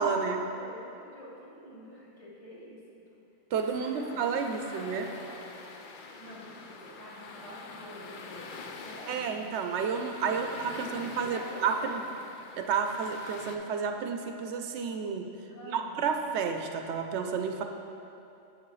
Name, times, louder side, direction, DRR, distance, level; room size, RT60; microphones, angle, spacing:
voice 1, 0.0-0.4 3.5-5.1 9.1-12.0 12.6-15.2 15.6-17.6, right 6 dB, 80° right, 5 dB, 0.8 m, -31 dB
voice 2, 0.5-3.0 3.7-5.5 6.0-9.3 10.4-12.0 15.5-16.1, equal, 30° left, -6 dB, 1.4 m, -48 dB
sound 1, 3.5-13.6, left 4 dB, 55° left, 0.6 m, -46 dB
7.8 x 7.4 x 3.1 m, 2.7 s
omnidirectional pair, 1.2 m